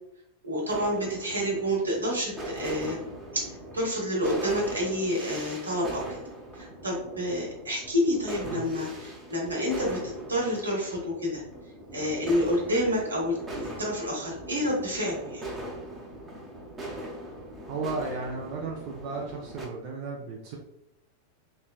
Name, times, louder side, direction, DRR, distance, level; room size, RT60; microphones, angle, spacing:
voice 1, 0.4-3.0 3.3-6.2 6.5-11.4 11.9-15.5, equal, 80° right, -3 dB, 1.0 m, -29 dB
sound 1, 0.7-19.7, right 1 dB, 15° right, 0.8 m, -40 dB
voice 2, 17.7-20.6, right 3 dB, 45° right, -1 dB, 0.5 m, -34 dB
3.1 x 3.1 x 2.3 m, 0.83 s
figure-of-eight pair, 90°, 0 cm